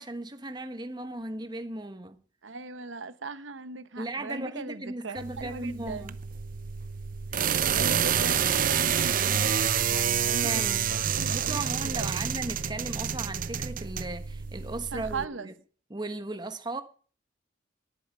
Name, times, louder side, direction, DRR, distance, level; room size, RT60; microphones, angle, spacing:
voice 1, 0.0-2.2 4.0-6.2 10.4-10.9 11.3-15.5 15.9-16.8, right 2 dB, 25° right, 1.1 m, -36 dB
voice 2, 2.4-6.1 7.3-12.2 14.9-15.5, right 3 dB, 90° right, 1.0 m, -39 dB
sound 1, 5.2-15.3, right 8 dB, 45° right, 0.7 m, -28 dB
18.0 x 8.7 x 6.1 m
head